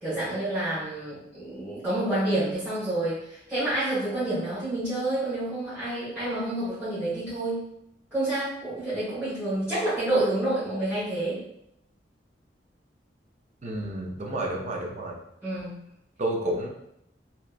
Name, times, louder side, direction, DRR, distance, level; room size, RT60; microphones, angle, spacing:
voice 1, 0.0-7.7 8.1-11.4 15.4-15.8, right 1 dB, 5° right, -13 dB, 1.2 m, -28 dB
voice 2, 13.6-15.2 16.2-16.7, right 1 dB, 40° right, -1 dB, 0.5 m, -30 dB
2.8 x 2.2 x 2.4 m, 0.77 s
head